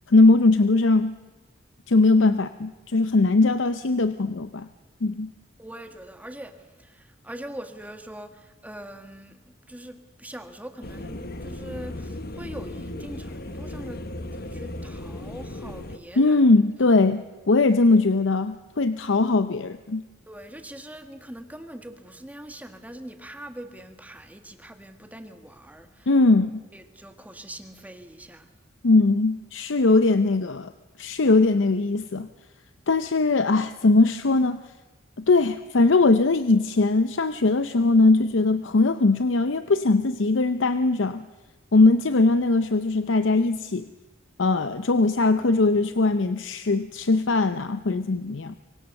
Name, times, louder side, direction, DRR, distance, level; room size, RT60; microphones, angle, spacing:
voice 1, 0.1-1.1 1.9-4.7 5.0-5.3 16.2-20.0 26.1-26.6 28.8-30.7 31.0-32.3 32.9-34.6 35.2-41.3 41.7-43.9 44.4-48.6, left 3 dB, 75° left, 11 dB, 0.7 m, -20 dB
voice 2, 5.6-9.4 9.7-14.1 14.3-16.4 20.3-26.1 26.7-28.5, right 1 dB, 10° right, 7 dB, 1.7 m, -42 dB
sound 1, 10.8-16.0, left 1 dB, 55° left, 1.4 m, -36 dB
25.0 x 23.5 x 6.7 m, 1.2 s
head